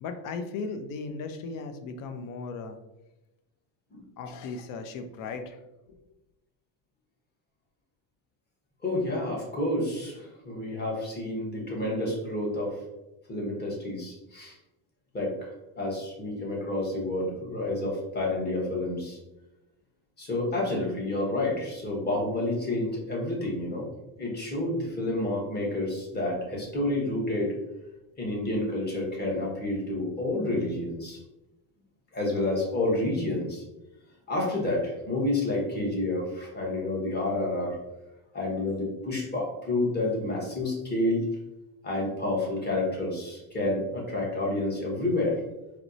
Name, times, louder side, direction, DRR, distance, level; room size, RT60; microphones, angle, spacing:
voice 1, 0.0-2.8 4.2-5.6 5.9-6.0, left 4 dB, 50° left, 7 dB, 0.5 m, -36 dB
voice 2, 8.8-12.8 13.3-14.6 15.1-15.5 15.8-19.2 20.2-23.9 24.2-27.5 28.2-31.2 32.1-33.6 34.3-37.8 38.3-41.2 41.8-45.4, left 2 dB, 25° left, -2 dB, 1.0 m, -29 dB
4.2 x 2.0 x 2.6 m, 0.97 s
cardioid pair, 120°, 42 cm